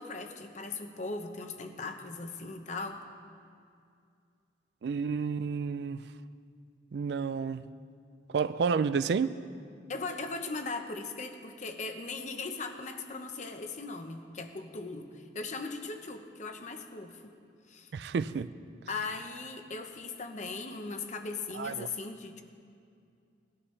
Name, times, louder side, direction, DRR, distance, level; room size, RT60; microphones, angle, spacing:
voice 1, 0.0-3.0 9.9-17.3 17.7-17.9 18.9-22.4, left 3 dB, 45° left, 0.9 m, -39 dB
voice 2, 4.8-6.0 6.9-7.7 8.3-9.3 17.9-18.5 21.5-21.9, right 5 dB, 65° right, 0.3 m, -30 dB
18.5 x 11.5 x 3.3 m
head